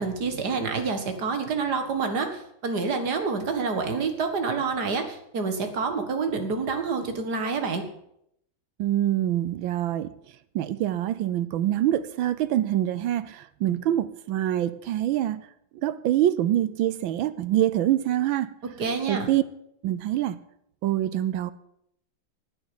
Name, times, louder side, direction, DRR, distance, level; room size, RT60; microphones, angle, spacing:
voice 1, 0.0-7.8 18.8-19.3, right 4 dB, 55° right, 2.2 m, -28 dB
voice 2, 8.8-10.1 10.5-15.5 15.8-18.6 19.1-19.4 19.8-20.4 20.8-21.5, right 12 dB, 75° right, 1.4 m, -25 dB
10.5 x 9.0 x 9.3 m
omnidirectional pair, 2.2 m